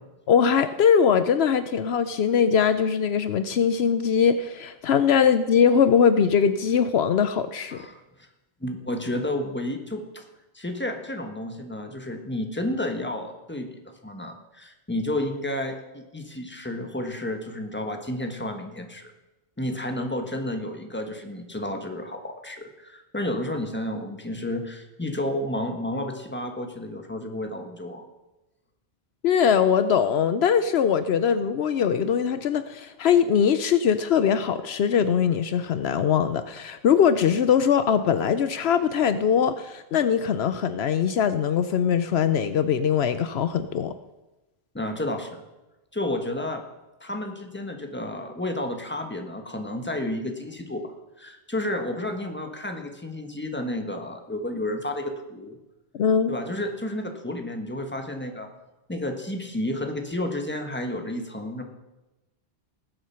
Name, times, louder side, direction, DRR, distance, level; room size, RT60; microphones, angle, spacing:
voice 1, 0.3-7.8 29.2-43.9 55.9-56.3, left 7 dB, 75° left, 11 dB, 0.9 m, -21 dB
voice 2, 7.7-8.3 8.6-10.2 10.5-19.1 19.6-28.1 44.7-45.4 45.9-46.6 47.0-50.8 51.2-55.6 56.3-58.5 58.9-61.6, left 1 dB, 10° left, 4 dB, 1.4 m, -31 dB
19.5 x 7.9 x 5.8 m, 1.0 s
omnidirectional pair, 1.1 m